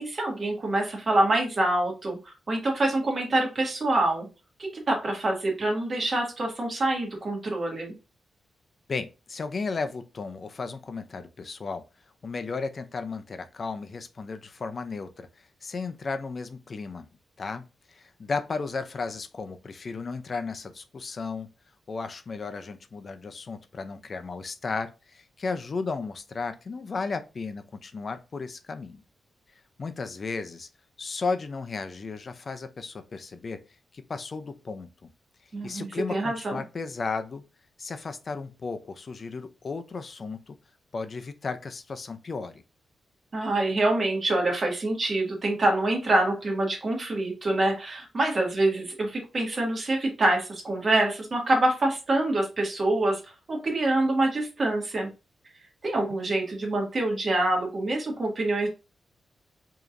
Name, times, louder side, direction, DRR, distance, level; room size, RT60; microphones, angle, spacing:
voice 1, 0.0-2.2 2.5-4.3 4.7-7.9 35.5-36.6 43.3-53.2 53.5-55.1 55.8-58.7, right 2 dB, 40° right, 1.6 m, -26 dB
voice 2, 8.9-11.8 12.2-15.3 15.6-17.1 17.4-21.5 21.9-29.0 29.8-30.7 31.0-33.6 33.9-35.1 35.6-37.4 37.8-40.6 40.9-42.6, left 4 dB, 40° left, 0.5 m, -34 dB
5.0 x 2.9 x 2.6 m
wide cardioid pair, 125°, 0 cm